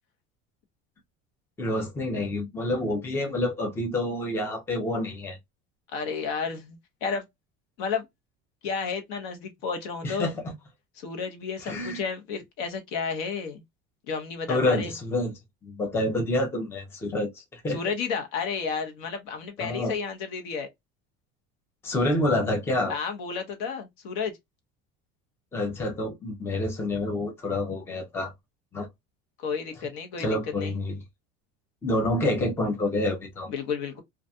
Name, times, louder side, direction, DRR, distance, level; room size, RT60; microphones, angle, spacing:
voice 1, 1.6-5.4 10.0-10.5 11.6-12.0 14.5-15.3 15.6-17.8 19.6-20.0 21.8-22.9 25.5-28.3 28.7-28.9 30.2-31.0 31.8-33.5, left 1 dB, 10° left, 0.5 m, -28 dB
voice 2, 5.9-7.2 7.8-8.1 8.6-10.3 11.0-13.6 14.1-14.9 17.7-20.7 22.9-24.3 29.4-30.3 30.6-30.7 33.5-34.0, left 5 dB, 70° left, 1.0 m, -32 dB
2.4 x 2.1 x 2.6 m
cardioid pair, 150°, 29 cm